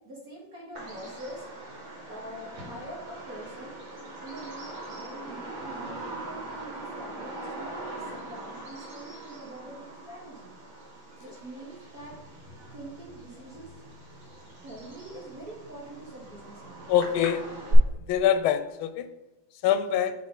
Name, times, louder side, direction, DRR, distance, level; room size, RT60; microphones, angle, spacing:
voice 1, 0.1-1.4 2.1-3.8 4.2-10.6 11.2-12.2 12.7-13.7 14.6-16.9 19.9-20.0, right 1 dB, 50° right, -4 dB, 1.7 m, -44 dB
Bird vocalization bird call bird song, 0.7-17.7, right 1 dB, 75° right, 2.5 m, -41 dB
voice 2, 16.9-17.4 18.1-19.1 19.6-20.1, left 10 dB, 90° left, 11 dB, 1.4 m, -24 dB
8.9 x 3.7 x 3.7 m, 1.0 s
omnidirectional pair, 2.2 m